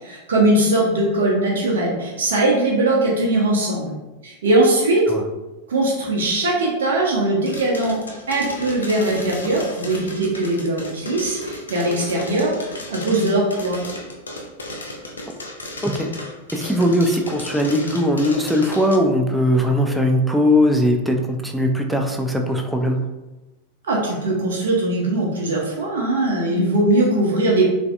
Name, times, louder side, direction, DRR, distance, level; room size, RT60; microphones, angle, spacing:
voice 1, 0.0-4.0 4.2-5.0 5.7-8.0 8.3-13.8 23.8-27.6, right 2 dB, 60° right, -2 dB, 0.6 m, -20 dB
sound 1, 7.4-18.9, left 1 dB, 75° left, 0.4 m, -34 dB
voice 2, 16.5-23.0, equal, 5° right, 2 dB, 0.4 m, -19 dB
3.1 x 2.5 x 2.4 m, 1.1 s
figure-of-eight pair, 90°, 0 cm